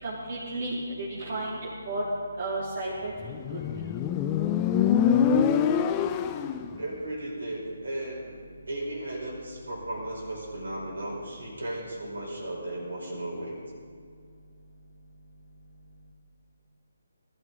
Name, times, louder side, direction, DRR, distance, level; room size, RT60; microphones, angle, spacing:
voice 1, 0.0-1.6 1.9-2.0 2.4-3.4, right 2 dB, 45° right, -7 dB, 3.0 m, -33 dB
Motorcycle, 3.2-6.7, left 8 dB, 20° left, 0.5 m, -25 dB
voice 2, 6.7-8.4 8.7-13.6, right 1 dB, 70° right, -3 dB, 4.7 m, -35 dB
20.0 x 12.5 x 4.0 m, 2.2 s
figure-of-eight pair, 145°, 0 cm